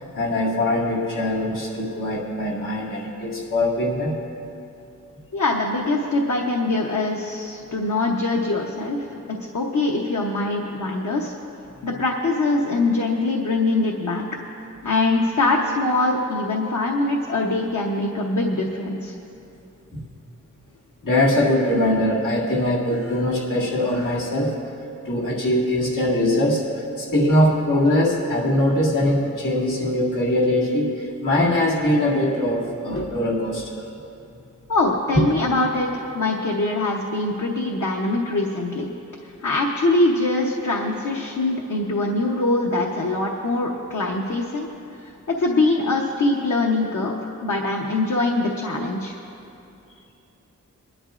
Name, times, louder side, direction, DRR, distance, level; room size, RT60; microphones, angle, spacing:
voice 1, 0.0-4.1 19.9-20.0 21.0-24.6 25.0-33.8 35.2-35.3, left 1 dB, 85° left, -5 dB, 2.0 m, -22 dB
voice 2, 5.3-11.3 11.8-14.2 14.8-19.1 34.7-38.9 39.4-44.7 45.0-49.2, left 2 dB, 65° left, -1 dB, 1.0 m, -23 dB
23.0 x 11.5 x 2.5 m, 2.8 s
wide cardioid pair, 100°, 31 cm